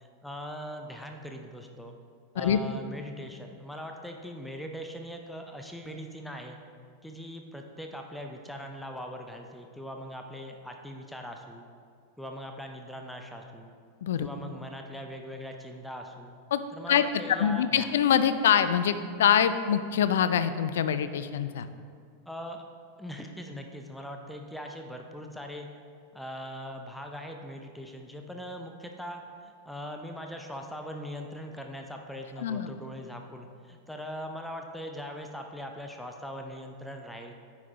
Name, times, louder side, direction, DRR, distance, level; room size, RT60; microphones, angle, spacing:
voice 1, 0.0-1.9 2.3-6.6 7.0-11.7 12.2-13.8 14.2-16.3 16.7-17.9 22.3-22.6 23.0-25.7 26.1-37.4, equal, 5° left, 3 dB, 0.5 m, -41 dB
voice 2, 17.3-21.7 32.4-32.7, left 9 dB, 60° left, 12 dB, 0.3 m, -24 dB
9.2 x 5.4 x 2.9 m, 2.2 s
figure-of-eight pair, 90°, 0 cm